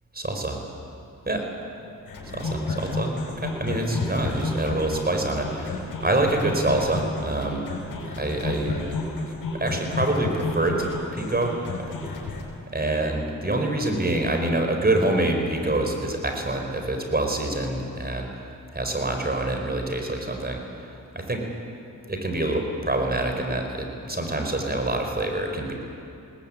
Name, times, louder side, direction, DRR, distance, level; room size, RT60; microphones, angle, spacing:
voice 1, 0.1-0.5 1.3-1.4 2.3-7.6 8.1-11.6 12.7-18.3 18.7-20.6 21.1-21.4 22.1-25.7, right 2 dB, 30° right, 3 dB, 4.9 m, -26 dB
sound 1, 2.1-12.4, left 3 dB, 85° left, 5.4 m, -31 dB
21.0 x 19.0 x 9.0 m, 2.6 s
cardioid pair, 55°, 33 cm